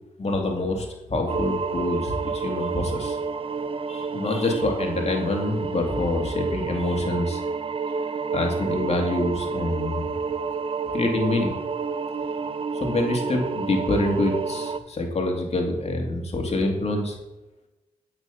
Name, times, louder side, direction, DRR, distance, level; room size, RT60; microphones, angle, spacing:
voice 1, 0.2-3.2 3.9-7.4 8.3-10.1 10.9-11.5 12.7-17.2, left 2 dB, 45° left, 1 dB, 2.6 m, -26 dB
sound 1, 1.3-14.8, right 5 dB, 40° right, 0.7 m, -30 dB
9.5 x 5.9 x 5.7 m, 0.99 s
supercardioid pair, 50°, 14 cm